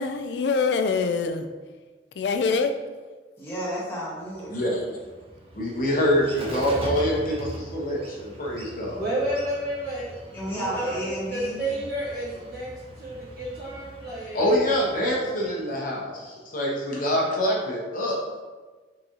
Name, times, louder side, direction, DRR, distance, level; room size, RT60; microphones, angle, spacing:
voice 1, 0.0-1.5 2.1-2.7 4.6-4.8, left 4 dB, 70° left, 8 dB, 0.3 m, -25 dB
voice 2, 3.4-4.6 10.3-11.6, equal, 15° left, -7 dB, 1.3 m, -32 dB
Bird, 4.3-15.8, right 1 dB, 35° right, 0.5 m, -41 dB
voice 3, 4.5-4.8 5.5-9.0 14.3-18.2, equal, 50° left, -3 dB, 0.9 m, -25 dB
voice 4, 8.9-10.1 10.5-12.7 13.0-14.5, right 1 dB, 60° right, -9 dB, 1.3 m, -31 dB
4.0 x 3.7 x 2.9 m, 1.3 s
head